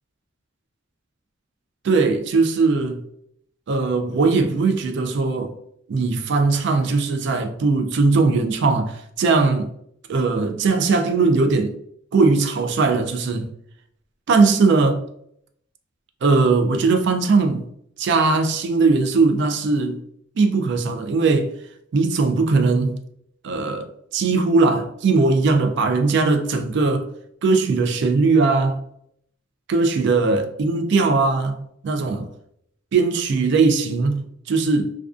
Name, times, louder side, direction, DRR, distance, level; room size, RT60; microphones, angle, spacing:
voice 1, 1.8-3.0 3.7-5.5 5.9-9.7 10.1-11.7 12.1-13.5 14.3-15.0 16.2-17.6 18.0-20.0 20.4-21.5 21.9-23.0 23.4-27.1 27.4-28.8 29.7-31.6 31.8-32.3 32.9-34.9, right 3 dB, 60° right, 0.3 m, -19 dB
2.4 x 2.3 x 2.3 m
head